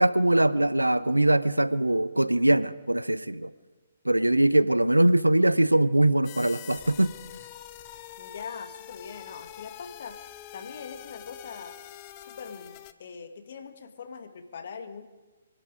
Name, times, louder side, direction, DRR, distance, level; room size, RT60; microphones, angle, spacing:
voice 1, 0.0-3.5 4.0-7.1, right 1 dB, 90° right, 17 dB, 0.6 m, -22 dB
sound 1, 6.2-12.9, left 12 dB, 30° left, 0.8 m, -45 dB
voice 2, 8.2-10.2 10.5-11.8 12.2-15.1, left 6 dB, 50° left, 7 dB, 1.5 m, -42 dB
24.0 x 12.0 x 5.1 m, 1.2 s
figure-of-eight pair, 130°, 0 cm